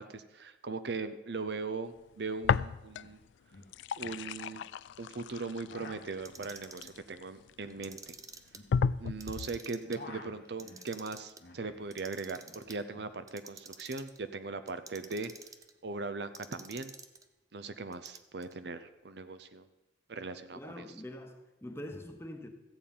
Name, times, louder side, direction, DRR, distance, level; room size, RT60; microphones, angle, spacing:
voice 1, 0.0-3.2 4.0-4.6 5.0-8.2 9.0-15.3 15.8-16.9 17.5-19.7 20.1-20.8, right 3 dB, 65° right, 11 dB, 0.7 m, -39 dB
sound 1, 2.4-3.2 3.5-7.5 8.1-8.2 8.7-9.6, left 6 dB, 85° left, 0.3 m, -33 dB
sound 2, 2.5-2.6 2.8-3.2 3.5-4.7 5.4-9.3 9.6-11.9 12.2-13.1, left 2 dB, 55° left, 1.4 m, -52 dB
Clock, 6.1-7.0 7.7-8.6 9.1-10.0 10.4-11.4 11.9-12.8 13.3-14.2 14.7-15.7 16.3-17.2 17.9-18.5, right 5 dB, 20° right, 0.6 m, -49 dB
voice 2, 20.5-22.5, left 1 dB, 15° left, 5 dB, 1.0 m, -44 dB
14.0 x 8.6 x 5.5 m, 0.99 s
head